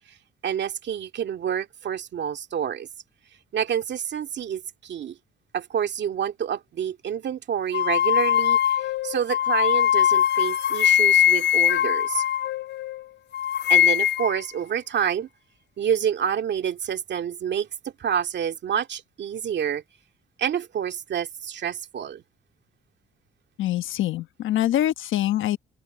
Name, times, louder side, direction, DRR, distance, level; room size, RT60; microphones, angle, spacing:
voice 1, 0.4-2.9 3.5-5.2 5.5-12.2 13.7-15.3 15.8-17.7 18.0-19.8 20.4-22.2, right 8 dB, 60° right, 2.2 m, -28 dB
sound 1, 7.7-13.0 13.3-14.4, left 10 dB, 60° left, 0.5 m, -21 dB
voice 2, 23.6-25.6, left 13 dB, 80° left, 1.1 m, -24 dB
cardioid pair, 90°, 20 cm